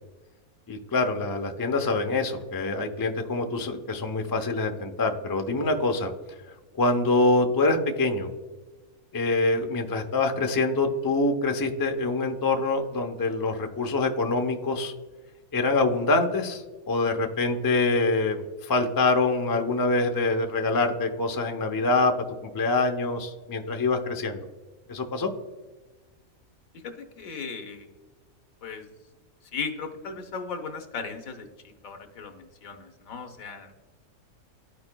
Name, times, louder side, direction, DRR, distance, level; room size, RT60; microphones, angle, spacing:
voice 1, 0.7-6.1 6.8-8.3 9.1-14.9 15.5-22.1 22.4-24.4 24.9-25.3, left 3 dB, 35° left, 4 dB, 0.3 m, -25 dB
voice 2, 26.8-27.9 28.6-28.8 29.5-31.5 31.8-33.7, left 5 dB, 70° left, 6 dB, 1.3 m, -36 dB
13.5 x 4.8 x 2.2 m, 1.3 s
omnidirectional pair, 1.5 m